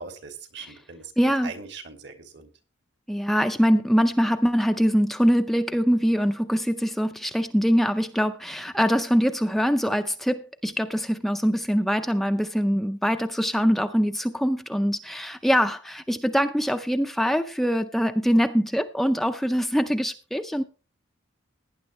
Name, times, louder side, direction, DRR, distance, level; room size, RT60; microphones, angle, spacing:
voice 1, 0.0-1.1 1.4-2.5, right 4 dB, 60° right, 6 dB, 2.3 m, -40 dB
voice 2, 1.2-1.5 3.1-20.6, equal, ahead, 7 dB, 0.5 m, -23 dB
18.0 x 10.0 x 3.1 m, 0.34 s
head